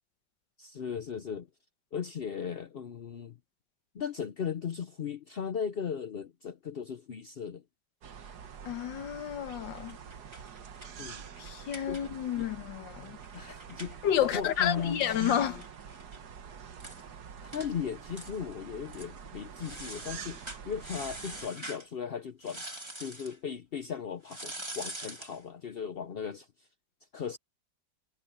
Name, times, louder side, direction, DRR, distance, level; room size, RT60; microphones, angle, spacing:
voice 1, 0.6-1.5 1.9-3.4 3.9-7.6 11.0-11.2 11.9-12.0 12.4-12.5 13.3-15.4 17.4-22.6 23.0-26.7 27.1-27.4, left 7 dB, 60° left, 0.6 m, -37 dB
sound 1, 8.0-21.5, right 7 dB, 60° right, 1.7 m, -46 dB
voice 2, 8.6-10.0 11.4-13.2 14.0-15.6, left 9 dB, 80° left, 1.8 m, -30 dB
sound 2, 9.8-12.4 12.7-12.8 13.1-16.2 16.5-16.6 16.8-17.0 17.5-17.7 18.1-18.6 18.9-19.1 19.6-21.9 22.4-23.4 24.2-25.4, right 1 dB, 15° right, 2.4 m, -44 dB
omnidirectional pair, 2.0 m